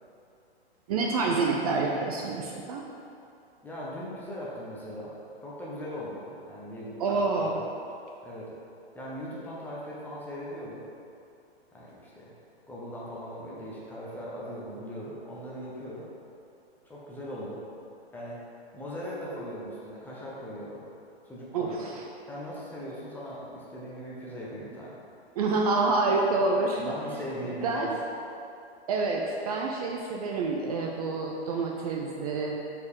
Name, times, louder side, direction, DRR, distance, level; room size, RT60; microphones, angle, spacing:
voice 1, 0.9-2.8 7.0-7.6 21.5-22.0 25.4-26.9 27.6-27.9 28.9-32.6, right 3 dB, 35° right, 0 dB, 0.5 m, -27 dB
voice 2, 3.6-5.1 5.4-7.6 8.2-8.6 8.9-10.8 11.7-12.3 12.7-16.0 16.8-17.6 18.1-18.4 18.7-20.8 21.3-21.9 22.3-25.0 26.8-27.9, equal, 5° left, -7 dB, 0.6 m, -39 dB
6.4 x 4.5 x 3.6 m, 2.6 s
hypercardioid pair, 145°, 33 cm